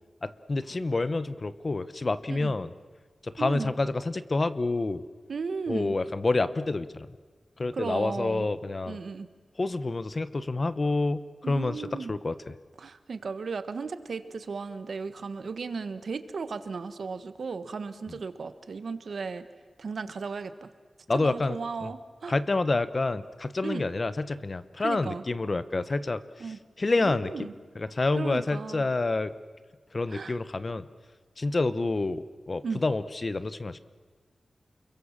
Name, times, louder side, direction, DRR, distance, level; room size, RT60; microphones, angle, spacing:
voice 1, 0.2-2.7 3.2-5.0 5.7-7.1 7.6-9.0 9.6-12.5 21.1-21.9 22.3-27.5 27.7-29.3 29.9-30.9 31.4-33.8, left 3 dB, 35° left, 14 dB, 0.9 m, -28 dB
voice 2, 3.4-3.7 5.3-6.0 7.7-8.5 8.9-9.3 11.4-12.2 12.8-19.4 19.8-20.7 21.1-22.4 23.6-23.8 24.8-25.2 26.4-26.6 27.0-27.5 28.2-28.9 30.1-30.4 32.6-32.8, right 4 dB, 70° right, 11 dB, 1.4 m, -35 dB
29.5 x 22.5 x 7.4 m, 1.5 s
wide cardioid pair, 115°, 0 cm